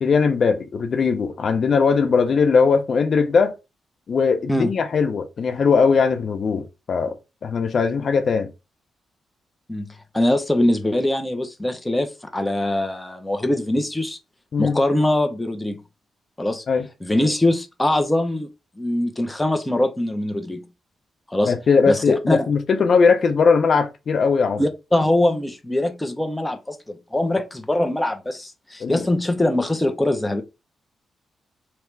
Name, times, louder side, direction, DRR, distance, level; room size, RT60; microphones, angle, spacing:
voice 1, 0.0-3.5 4.1-7.1 7.4-8.5 14.5-14.8 16.7-16.9 21.4-24.6 28.8-29.0, left 5 dB, 55° left, 0.7 m, -19 dB
voice 2, 10.1-14.2 14.6-15.8 16.4-16.6 17.0-18.5 18.8-20.6 21.3-21.5 21.9-22.5 24.6-30.4, left 1 dB, 10° left, 0.7 m, -22 dB
3.3 x 3.1 x 4.5 m
cardioid pair, 85°, 0 cm